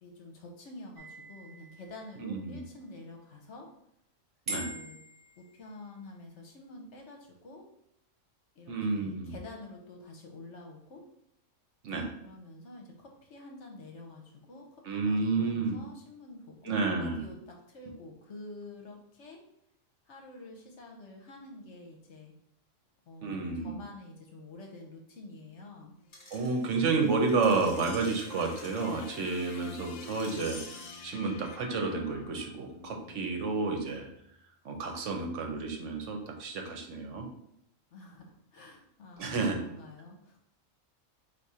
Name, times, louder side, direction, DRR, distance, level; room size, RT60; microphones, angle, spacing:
voice 1, 0.0-3.7 4.5-5.0 5.4-7.6 8.5-11.0 12.2-19.4 20.1-22.3 23.1-25.9 37.9-40.4, left 2 dB, 65° left, 1 dB, 1.1 m, -48 dB
sound 1, 1.0-2.5 4.5-6.1, right 2 dB, 35° right, 1.0 m, -43 dB
voice 2, 2.2-2.6 4.5-4.7 8.7-9.4 11.8-12.1 14.8-15.8 16.6-17.2 23.2-23.8 26.3-30.6 31.0-34.1 34.6-37.3 39.2-39.6, right 4 dB, 70° right, 3 dB, 1.1 m, -30 dB
sound 2, 26.0-34.3, left 6 dB, 80° left, 1.0 m, -50 dB
Screech, 26.1-31.1 31.8-31.9, left 3 dB, 40° left, 1.1 m, -49 dB
4.2 x 2.6 x 4.8 m, 0.78 s
omnidirectional pair, 1.4 m